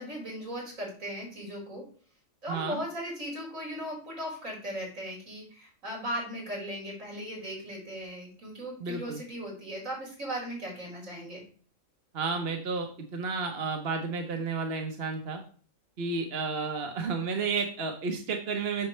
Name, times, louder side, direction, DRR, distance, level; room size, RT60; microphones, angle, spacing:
voice 1, 0.0-1.9 2.4-11.4, equal, 70° right, -2 dB, 4.7 m, -37 dB
voice 2, 2.5-2.8 8.8-9.2 12.1-15.4 16.0-18.9, right 4 dB, 50° right, 4 dB, 1.1 m, -32 dB
7.9 x 6.7 x 3.2 m, 0.42 s
omnidirectional pair, 1.4 m